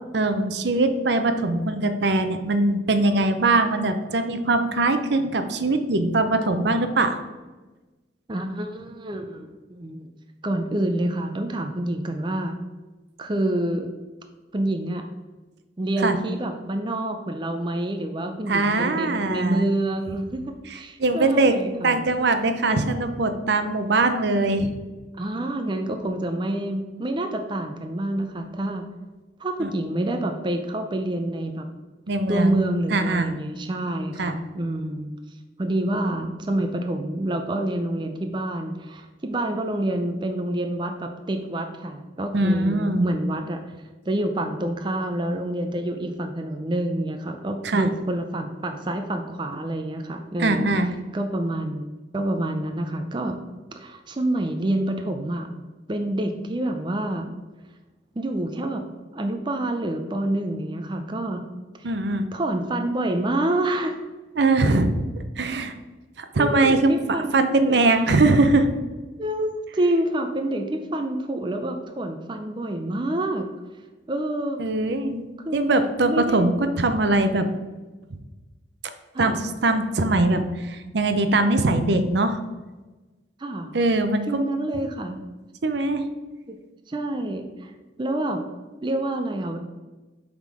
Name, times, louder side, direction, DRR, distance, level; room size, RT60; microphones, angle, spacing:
voice 1, 0.1-7.2 16.0-16.1 18.5-19.7 21.0-21.6 21.8-24.7 29.6-29.7 32.1-32.6 32.9-33.3 34.2-34.4 42.3-43.1 47.6-47.9 50.4-50.9 61.8-62.3 64.4-64.9 65.4-65.7 66.2-66.9 67.3-68.7 74.6-75.3 75.5-77.5 79.2-79.3 79.6-82.4 83.7-84.4 85.6-86.0, right 2 dB, 65° right, 8 dB, 0.6 m, -21 dB
voice 2, 8.3-10.1 10.4-12.6 13.2-13.9 14.5-15.0 15.8-22.0 25.2-28.9 29.4-31.7 32.3-35.1 35.6-43.6 44.1-50.7 51.1-51.8 52.1-53.4 53.8-55.5 55.9-57.3 58.2-58.8 59.1-61.4 61.8-61.9 62.3-64.0 66.4-67.8 69.2-73.5 74.1-74.6 75.4-76.4 79.1-79.4 83.4-83.7 84.3-85.2 86.5-86.6 86.9-87.7 88.0-88.4 88.8-89.6, right 1 dB, 25° right, 5 dB, 0.5 m, -27 dB
7.7 x 3.7 x 4.7 m, 1.2 s
head